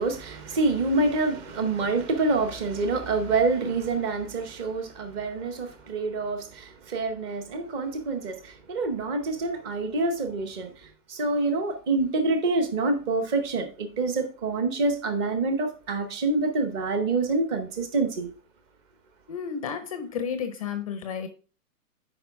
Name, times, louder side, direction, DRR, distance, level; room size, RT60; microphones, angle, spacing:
voice 1, 0.0-18.3, right 3 dB, 15° right, 0.7 m, -27 dB
voice 2, 19.3-21.3, left 7 dB, 25° left, 0.5 m, -32 dB
8.8 x 5.1 x 3.5 m
hypercardioid pair, 155°, 48 cm